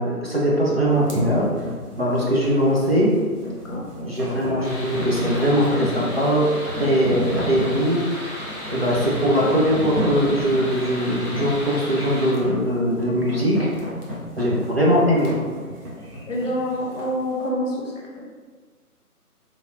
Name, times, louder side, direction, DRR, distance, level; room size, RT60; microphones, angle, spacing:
voice 1, 0.0-1.5 2.0-3.1 4.0-13.7 14.4-15.4, equal, 45° right, -5 dB, 0.5 m, -21 dB
sound 1, 0.9-17.2, equal, 85° right, 0.9 m, -32 dB
sound 2, 4.6-12.3, left 1 dB, 60° right, 1.2 m, -35 dB
voice 2, 16.3-18.2, equal, 55° left, -4 dB, 0.8 m, -27 dB
3.2 x 2.2 x 2.4 m, 1.5 s
figure-of-eight pair, 150°, 46 cm